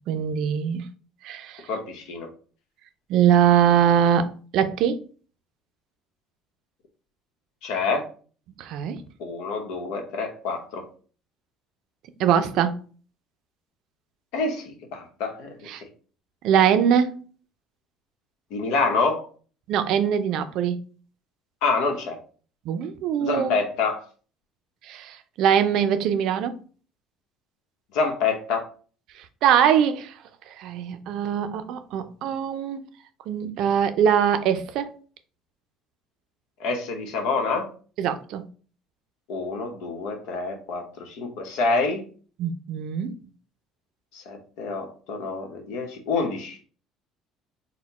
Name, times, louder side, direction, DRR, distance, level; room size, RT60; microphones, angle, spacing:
voice 1, 0.1-0.9 1.2-1.7 3.1-5.0 8.6-9.0 12.2-12.8 15.7-15.8 16.4-17.2 19.7-20.8 22.7-23.6 24.8-26.6 29.2-30.2 30.6-32.8 33.3-34.9 38.0-38.4 42.4-43.1, right 8 dB, 65° right, 0.5 m, -22 dB
voice 2, 1.7-2.3 7.6-8.1 9.2-10.9 14.3-15.5 18.5-19.3 21.6-22.2 23.2-24.0 27.9-28.7 36.6-37.7 39.3-42.0 44.1-46.6, left 4 dB, 80° left, 1.0 m, -27 dB
4.2 x 2.2 x 4.1 m
cardioid pair, 130°, 0 cm